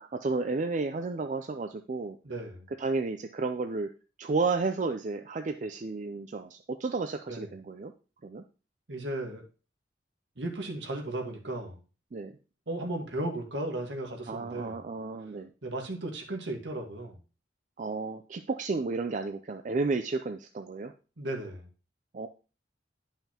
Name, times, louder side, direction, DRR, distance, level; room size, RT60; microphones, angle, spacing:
voice 1, 0.0-2.2 2.8-3.9 4.2-7.9 8.2-8.4 12.1-12.4 14.3-15.5 17.8-20.9 22.1-22.3, right 3 dB, 40° right, 7 dB, 0.4 m, -32 dB
voice 2, 2.2-2.7 7.3-7.4 8.9-9.4 10.4-11.8 12.7-14.8 15.6-17.2 21.2-21.7, right 1 dB, 75° right, 2 dB, 1.6 m, -35 dB
10.5 x 5.6 x 2.9 m, 0.34 s
head